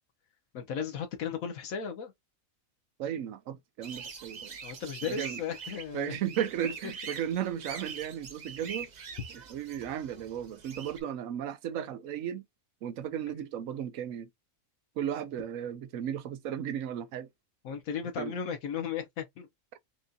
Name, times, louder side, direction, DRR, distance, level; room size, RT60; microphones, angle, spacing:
voice 1, 0.5-2.1 4.6-6.2 17.6-19.5, left 7 dB, 85° left, 1.3 m, -35 dB
voice 2, 3.0-4.6 5.1-5.4 5.9-8.9 9.3-12.4 12.8-14.3 15.0-17.3 18.2-18.4, right 9 dB, 80° right, 1.0 m, -35 dB
sound 1, 3.8-11.0, right 6 dB, 40° right, 0.6 m, -44 dB
5.9 x 2.6 x 2.4 m
omnidirectional pair, 1.4 m